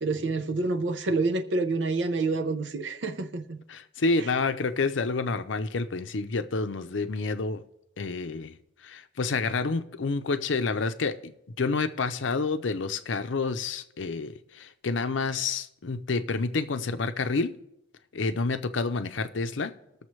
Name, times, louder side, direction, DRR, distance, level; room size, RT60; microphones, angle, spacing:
voice 1, 0.0-3.6, right 3 dB, 70° right, 0.6 m, -28 dB
voice 2, 3.7-7.6 8.0-8.6 8.8-11.3 11.6-17.5 18.1-19.7, left 4 dB, 85° left, 0.6 m, -29 dB
20.5 x 6.9 x 3.2 m
head